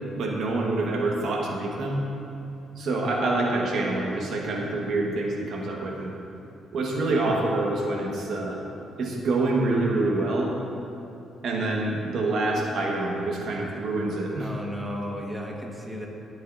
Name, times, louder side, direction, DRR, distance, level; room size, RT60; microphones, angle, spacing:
voice 1, 0.1-2.0 2.8-6.1 6.7-8.6 9.0-10.5 11.4-14.5, right 2 dB, 65° right, -1 dB, 1.3 m, -26 dB
voice 2, 7.1-7.5 14.4-16.1, equal, 10° right, -1 dB, 1.4 m, -34 dB
17.0 x 7.9 x 2.6 m, 2.7 s
cardioid pair, 90°, 0 cm